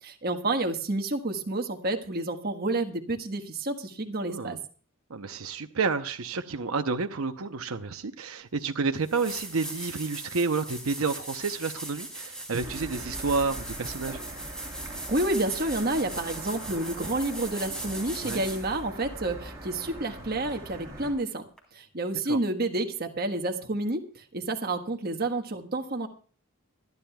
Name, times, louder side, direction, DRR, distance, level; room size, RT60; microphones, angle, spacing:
voice 1, 0.0-4.6 15.1-21.4 21.7-26.1, right 2 dB, 45° right, 1.4 m, -29 dB
voice 2, 5.1-14.2 18.2-18.4 22.3-22.4, right 4 dB, 85° right, 0.8 m, -30 dB
sound 1, 8.5-8.6 9.0-18.8 21.6-21.7, right 1 dB, 5° left, 3.6 m, -39 dB
sound 2, 12.6-21.1, right 1 dB, 15° right, 6.2 m, -42 dB
26.0 x 11.0 x 2.3 m
head